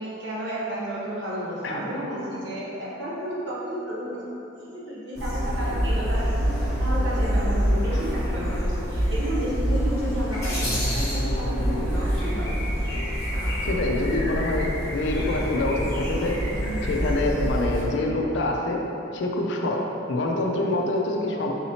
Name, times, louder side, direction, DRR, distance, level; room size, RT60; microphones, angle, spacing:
voice 1, 0.0-4.2 4.6-12.6, equal, 65° right, -7 dB, 0.9 m, -32 dB
sound 1, 5.2-17.8, equal, 15° left, 0.7 m, -26 dB
voice 2, 13.6-16.4 16.8-18.8 19.1-21.5, left 2 dB, 65° left, 1 dB, 0.4 m, -26 dB
3.9 x 2.9 x 2.7 m, 3.0 s
head